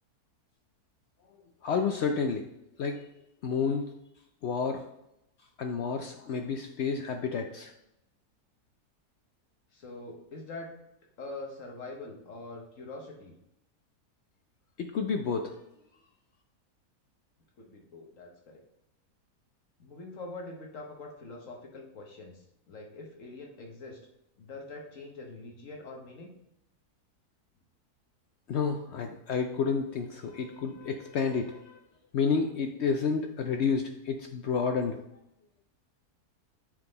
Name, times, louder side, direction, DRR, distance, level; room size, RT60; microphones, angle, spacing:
voice 1, 1.6-2.5 2.8-3.0 3.4-3.9 4.4-4.8 5.6-7.7 14.8-15.5 28.5-31.8 32.1-35.0, left 5 dB, 75° left, 4 dB, 0.6 m, -30 dB
voice 2, 9.7-10.7 11.2-13.3 17.6-18.6 19.8-24.0 24.4-26.3, left 2 dB, 55° left, 1 dB, 1.3 m, -44 dB
8.8 x 3.7 x 3.9 m, 0.83 s
omnidirectional pair, 1.7 m